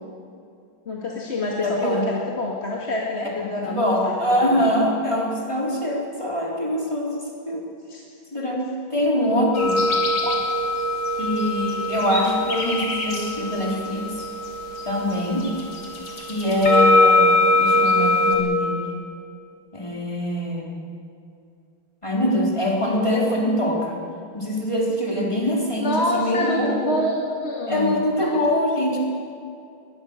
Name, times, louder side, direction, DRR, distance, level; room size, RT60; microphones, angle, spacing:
voice 1, 0.9-4.7 7.9-8.0 9.3-9.4 10.2-10.4 25.8-28.6, left 2 dB, 30° left, -2 dB, 2.2 m, -27 dB
voice 2, 1.6-2.0 3.5-7.7 8.3-9.8 11.2-14.1 14.8-15.5 16.2-18.9 19.7-20.8 22.0-24.0 24.3-26.9 27.7-29.0, equal, 15° left, -3 dB, 4.1 m, -23 dB
sound 1, 9.5-18.4, left 2 dB, 75° left, 4.3 m, -22 dB
21.5 x 21.0 x 6.6 m, 2.5 s
omnidirectional pair, 2.3 m